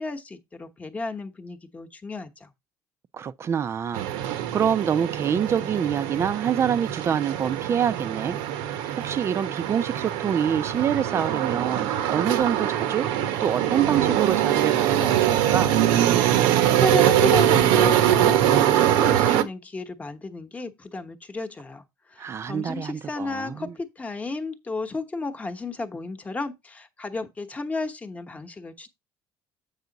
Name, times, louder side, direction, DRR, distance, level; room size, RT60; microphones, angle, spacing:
voice 1, 0.0-2.5 16.6-28.9, left 3 dB, 15° left, 1.0 m, -33 dB
voice 2, 3.1-8.4 9.0-13.1 13.4-15.8 22.2-23.7, right 8 dB, 30° right, 0.5 m, -26 dB
sound 1, 3.9-19.4, right 11 dB, 85° right, 1.0 m, -23 dB
8.2 x 5.6 x 3.9 m
cardioid pair, 140°, 8 cm